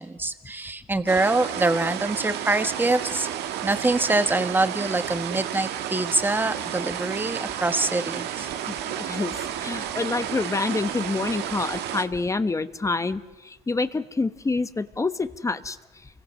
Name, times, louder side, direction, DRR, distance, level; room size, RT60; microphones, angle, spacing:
voice 1, 0.0-3.3 3.6-8.5, right 2 dB, 10° right, 10 dB, 1.4 m, -25 dB
sound 1, 1.1-12.1, right 10 dB, 80° right, 1.6 m, -32 dB
voice 2, 8.7-13.2 13.4-15.8, left 3 dB, 20° left, 12 dB, 1.0 m, -27 dB
29.5 x 23.5 x 6.4 m, 1.1 s
cardioid pair, 110°, 17 cm